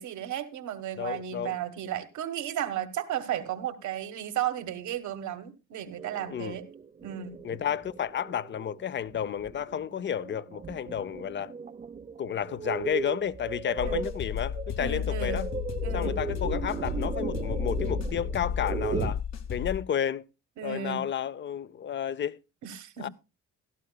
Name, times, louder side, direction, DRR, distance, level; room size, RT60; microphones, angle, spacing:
voice 1, 0.0-6.6 7.0-7.4 13.8-14.0 14.8-15.4 15.8-16.2 20.6-21.0 22.6-23.1, right 10 dB, 75° right, 1.3 m, -34 dB
voice 2, 1.0-1.6 6.3-6.6 7.4-11.5 12.2-15.5 15.9-19.2 19.5-20.2 20.6-22.4 23.0-23.1, left 9 dB, 40° left, 0.5 m, -31 dB
sound 1, 6.0-19.1, right 5 dB, 25° right, 0.5 m, -37 dB
sound 2, 13.8-19.8, left 8 dB, 60° left, 1.2 m, -33 dB
16.5 x 12.0 x 2.2 m
cardioid pair, 90°, 30 cm